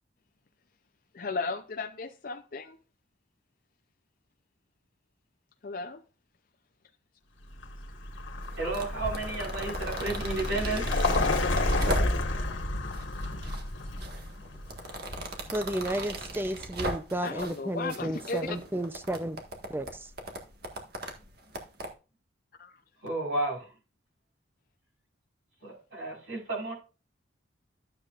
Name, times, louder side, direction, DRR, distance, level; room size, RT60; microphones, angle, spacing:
voice 1, 1.1-2.8 5.6-6.0 17.2-18.6 22.6-22.7, left 3 dB, 45° left, 0.6 m, -35 dB
Vehicle, 7.5-16.3, left 2 dB, 75° left, 1.7 m, -31 dB
sound 1, 8.4-12.4 12.9-13.6 14.0-17.6 17.9-21.9, right 1 dB, 50° right, 1.7 m, -38 dB
voice 2, 8.6-10.9 23.0-23.7 25.6-26.7, right 2 dB, 80° right, 5.1 m, -32 dB
voice 3, 15.5-19.4 19.7-20.1, right 1 dB, 10° right, 0.6 m, -32 dB
12.5 x 7.9 x 2.5 m
head